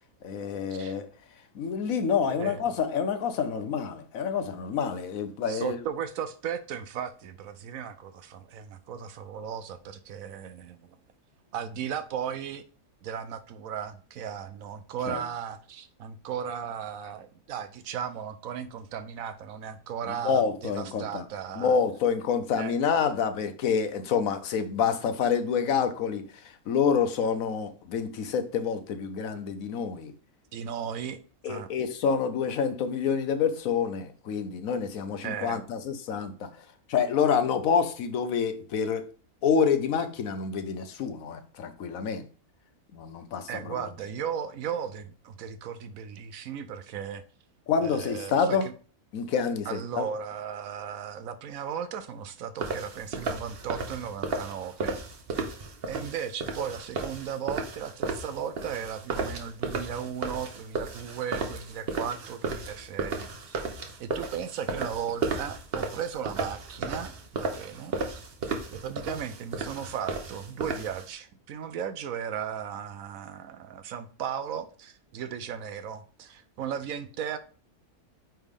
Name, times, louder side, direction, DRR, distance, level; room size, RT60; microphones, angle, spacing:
voice 1, 0.2-1.1 1.5-5.8 15.1-15.2 20.2-21.3 21.6-30.1 31.4-36.5 36.9-39.1 39.4-42.3 42.9-43.8 47.7-48.7 49.1-50.0, left 6 dB, 70° left, 1.1 m, -27 dB
voice 2, 2.3-2.8 5.5-11.0 11.5-12.6 13.0-21.8 22.5-22.7 30.5-31.2 31.5-31.7 35.2-35.6 43.5-47.2 47.8-48.7 49.7-55.0 55.9-63.6 64.0-68.2 68.7-77.4, right 8 dB, 70° right, 0.9 m, -36 dB
sound 1, 52.6-71.1, right 4 dB, 45° right, 1.0 m, -34 dB
8.9 x 3.4 x 3.6 m
omnidirectional pair, 1.6 m